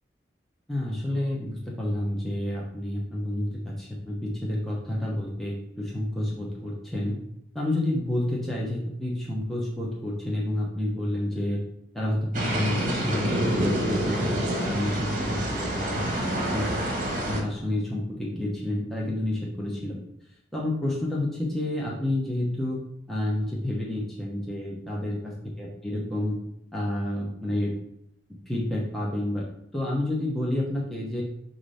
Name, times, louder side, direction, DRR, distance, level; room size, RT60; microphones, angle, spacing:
voice 1, 0.7-7.1 7.5-11.6 11.9-16.8 17.1-20.0 20.5-22.8 23.1-26.4 26.7-27.7 28.5-29.4 29.7-31.2, left 1 dB, ahead, -5 dB, 0.9 m, -29 dB
sound 1, 12.3-17.4, right 1 dB, 45° right, 1.1 m, -27 dB
6.6 x 2.7 x 5.5 m, 0.78 s
head